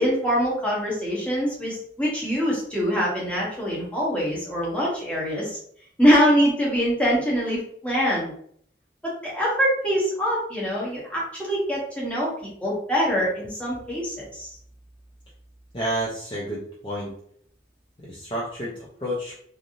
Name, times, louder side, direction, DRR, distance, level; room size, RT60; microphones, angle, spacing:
voice 1, 0.0-5.6 6.0-8.3 9.2-12.3 12.6-14.5, equal, 5° left, -6 dB, 1.0 m, -24 dB
voice 2, 15.7-17.1 18.1-19.3, right 1 dB, 30° left, -5 dB, 0.6 m, -30 dB
3.2 x 2.6 x 2.6 m, 0.63 s
head